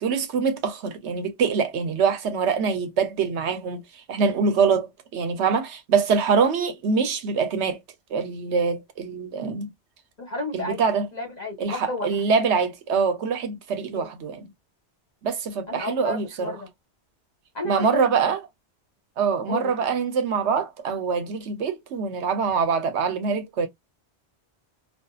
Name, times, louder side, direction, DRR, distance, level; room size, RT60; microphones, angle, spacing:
voice 1, 0.0-3.8 4.1-7.8 8.1-9.7 10.5-11.1 11.6-14.5 15.2-16.6 17.6-18.4 19.2-23.7, right 5 dB, 75° right, 1.0 m, -24 dB
voice 2, 10.2-10.8 11.1-12.1 13.9-14.1 15.7-16.7 17.5-18.3 19.5-19.8, left 2 dB, 40° left, 1.0 m, -32 dB
2.5 x 2.4 x 2.3 m
omnidirectional pair, 1.2 m